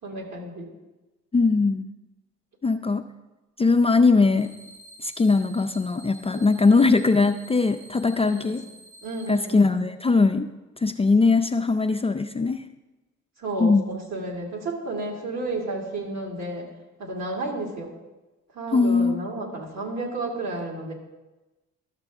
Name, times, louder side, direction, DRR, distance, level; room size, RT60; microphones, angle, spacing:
voice 1, 0.0-0.7 6.3-6.5 8.1-8.6 9.0-9.7 13.4-16.7 17.0-17.9 18.5-20.9, right 2 dB, 60° right, 0 dB, 2.3 m, -32 dB
voice 2, 1.3-1.9 2.6-3.0 3.6-4.5 5.0-8.6 9.3-10.5 10.8-12.6 13.6-13.9 18.7-19.2, left 3 dB, 20° left, 6 dB, 0.4 m, -20 dB
sound 1, 4.4-9.3, right 2 dB, 20° right, 1.1 m, -49 dB
12.5 x 6.7 x 3.5 m, 1.1 s
cardioid pair, 90°, 30 cm